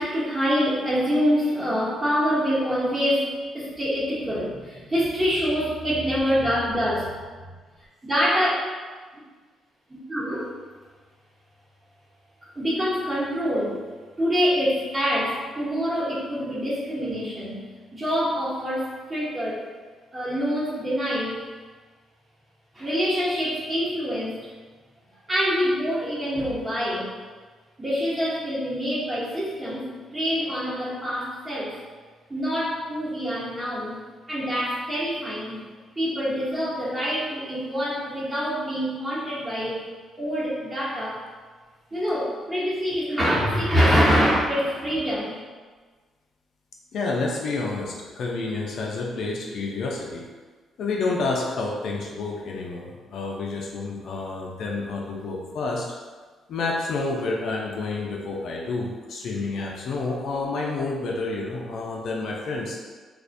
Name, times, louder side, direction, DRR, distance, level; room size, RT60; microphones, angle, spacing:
voice 1, 0.0-7.1 8.0-8.5 9.9-10.5 12.4-13.8 14.2-17.7 17.9-19.7 20.1-21.5 22.7-24.5 25.3-27.1 27.8-31.8 32.3-34.0 34.3-35.6 36.0-39.9 40.2-41.2 41.9-45.4, equal, 25° right, -7 dB, 0.9 m, -25 dB
voice 2, 46.9-50.2 50.8-55.9 56.5-62.8, left 3 dB, 70° left, -2 dB, 0.4 m, -29 dB
2.4 x 2.1 x 2.5 m, 1.4 s
cardioid pair, 90°, 0 cm